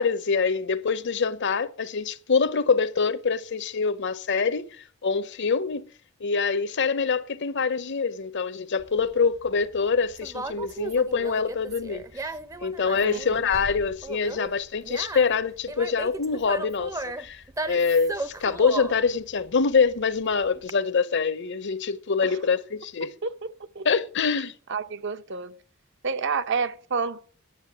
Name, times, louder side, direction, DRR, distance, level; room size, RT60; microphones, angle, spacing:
voice 1, 0.0-4.7 5.0-5.9 6.2-12.1 12.6-23.1 23.8-24.5, left 5 dB, 60° left, 0.8 m, -25 dB
Conversation, 8.8-20.7, right 2 dB, 15° right, 0.6 m, -36 dB
voice 2, 23.2-23.9 24.7-25.5 26.0-27.2, right 5 dB, 60° right, 0.8 m, -29 dB
10.0 x 7.3 x 8.4 m
head